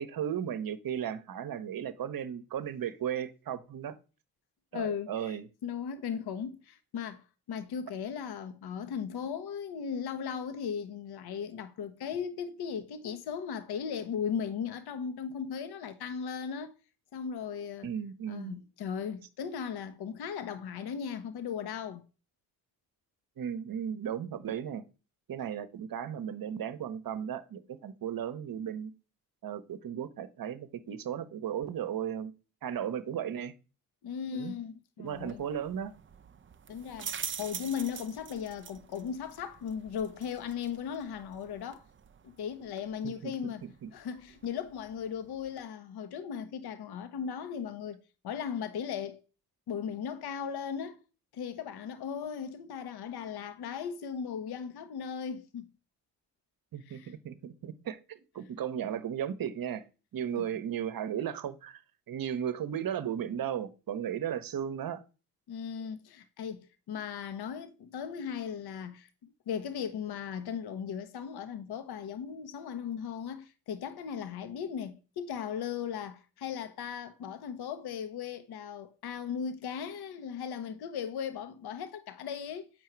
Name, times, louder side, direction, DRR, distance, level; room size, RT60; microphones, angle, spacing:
voice 1, 0.0-4.0 4.7-5.5 17.8-18.6 23.4-24.8 25.3-28.9 29.4-32.3 32.6-33.5 34.3-34.5 35.0-35.9 43.0-43.5 43.8-43.9 56.7-59.8 60.1-61.8 62.1-65.0, right 9 dB, 50° right, 1.0 m, -35 dB
voice 2, 4.7-16.7 17.1-17.9 18.3-22.0 34.0-35.4 36.7-41.9 42.2-49.2 49.7-51.0 51.3-55.7 56.9-57.1 60.4-60.5 65.5-82.7, left 7 dB, 55° left, 0.9 m, -37 dB
sound 1, 35.1-45.7, right 7 dB, 25° right, 0.6 m, -46 dB
7.7 x 4.7 x 4.5 m
hypercardioid pair, 45°, 46 cm